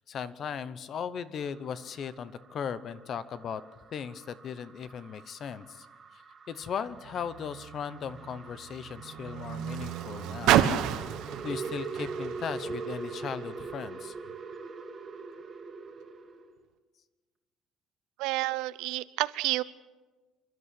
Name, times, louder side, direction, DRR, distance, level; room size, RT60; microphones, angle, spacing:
voice 1, 0.0-3.6 3.9-5.9 6.1-6.2 6.5-10.7 11.4-14.1, left 7 dB, 35° left, 15 dB, 0.9 m, -37 dB
sound 1, 1.4-16.5, right 4 dB, 25° right, 2.2 m, -43 dB
Car, 6.9-13.5 14.3-14.4, right 11 dB, 70° right, 1.3 m, -31 dB
voice 2, 18.2-19.6, right 19 dB, 90° right, 16 dB, 0.7 m, -30 dB
27.5 x 12.5 x 8.3 m, 1.3 s
cardioid pair, 170°, 0 cm